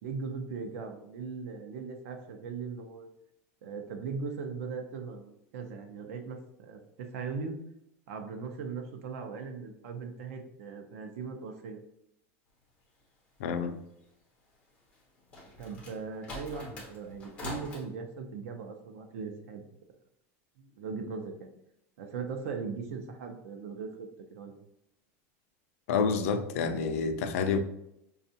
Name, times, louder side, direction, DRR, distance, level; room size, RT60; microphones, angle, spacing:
voice 1, 0.0-3.1 3.6-7.6 8.1-11.8 15.6-19.6 20.6-21.5 22.0-24.5, right 5 dB, 85° right, 0.6 m, -39 dB
voice 2, 13.4-13.8 25.9-27.6, left 5 dB, 85° left, 0.4 m, -28 dB
sound 1, 14.9-17.8, left 2 dB, 15° left, 0.8 m, -43 dB
5.3 x 2.4 x 2.7 m
supercardioid pair, 180°, 7 cm